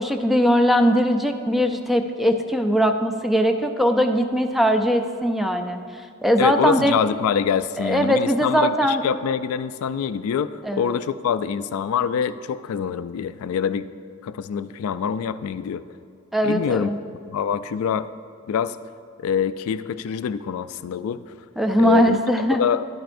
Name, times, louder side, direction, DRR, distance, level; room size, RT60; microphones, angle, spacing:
voice 1, 0.0-6.9 7.8-9.0 10.6-10.9 16.3-17.0 21.6-22.6, equal, ahead, 6 dB, 0.4 m, -20 dB
voice 2, 6.4-13.9 14.2-15.8 16.4-16.9 17.3-18.1 18.5-18.8 19.2-21.2 21.8-22.2 22.5-22.9, left 7 dB, 70° left, 14 dB, 0.3 m, -25 dB
11.5 x 8.9 x 2.6 m, 2.5 s
head